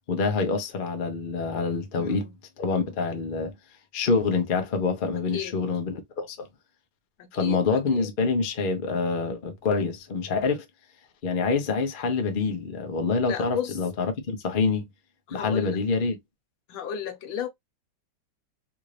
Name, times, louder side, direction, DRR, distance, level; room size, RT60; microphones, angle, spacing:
voice 1, 0.1-2.3 2.6-3.5 3.9-6.5 7.3-10.6 11.2-14.9 15.3-16.2, left 4 dB, 65° left, 0.5 m, -26 dB
voice 2, 2.0-2.3 2.7-2.9 5.3-5.5 7.2-8.1 13.3-13.8 15.3-15.8 16.7-17.5, left 9 dB, 85° left, 1.6 m, -34 dB
3.6 x 2.5 x 3.2 m
omnidirectional pair, 2.1 m